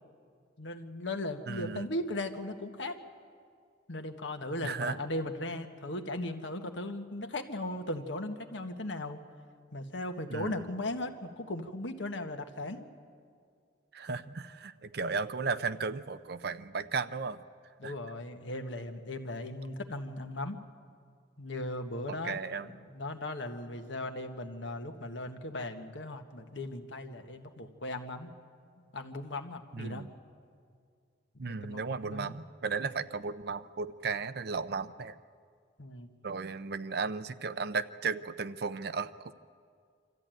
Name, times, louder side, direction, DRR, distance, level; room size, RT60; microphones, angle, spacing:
voice 1, 0.6-3.0 3.9-9.2 9.7-12.8 17.8-20.6 21.4-28.3 28.9-30.1 31.5-32.3 35.8-36.1, left 1 dB, 85° left, 6 dB, 1.4 m, -37 dB
voice 2, 1.5-1.9 4.6-5.0 10.3-10.7 13.9-17.4 17.8-17.9 22.1-22.7 29.7-30.1 31.4-35.2 36.2-39.3, right 4 dB, 60° right, 13 dB, 0.6 m, -35 dB
26.0 x 13.5 x 9.1 m, 2.2 s
head